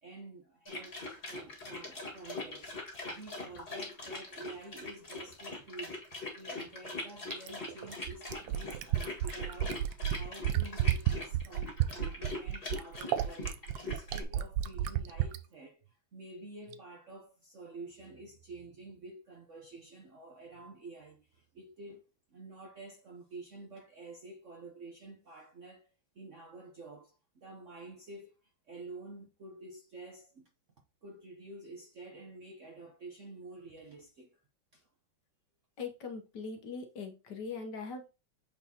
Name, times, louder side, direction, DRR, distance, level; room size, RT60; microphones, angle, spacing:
voice 1, 0.0-6.0 6.3-22.0 22.3-25.9 26.1-30.5 31.0-34.4 34.7-34.9, right 2 dB, 55° right, 0.9 m, -49 dB
sound 1, 0.7-14.2, left 2 dB, 30° left, 1.7 m, -42 dB
Fill (with liquid), 7.3-15.4 16.7-16.8, right 12 dB, 75° right, 1.2 m, -31 dB
voice 2, 35.8-38.1, left 4 dB, 60° left, 1.5 m, -41 dB
8.2 x 4.1 x 2.8 m
omnidirectional pair, 2.3 m